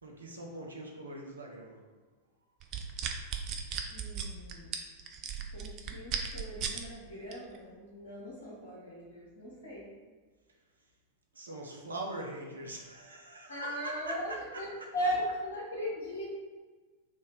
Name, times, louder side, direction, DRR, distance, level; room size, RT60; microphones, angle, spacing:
voice 1, 0.0-1.9 11.3-14.9, right 1 dB, 75° right, 0 dB, 0.7 m, -42 dB
sound 1, 2.6-6.8 7.3-7.6, right 7 dB, 40° right, 0.4 m, -36 dB
voice 2, 3.9-4.9 5.5-9.9 13.5-16.2, equal, 75° left, -8 dB, 1.2 m, -38 dB
3.5 x 2.6 x 4.1 m, 1.4 s
figure-of-eight pair, 90°, 0 cm